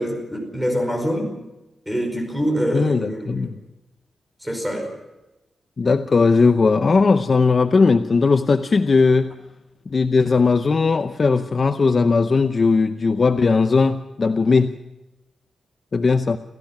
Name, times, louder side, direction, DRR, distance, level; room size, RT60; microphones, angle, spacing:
voice 1, 0.0-1.4 1.8-3.5 4.4-4.9, equal, 5° right, 4 dB, 5.1 m, -25 dB
voice 2, 2.7-3.6 5.8-9.3 9.9-14.7 15.9-16.4, left 4 dB, 35° left, 9 dB, 0.7 m, -18 dB
28.0 x 15.5 x 5.9 m, 0.99 s
wide cardioid pair, 165°, 0 cm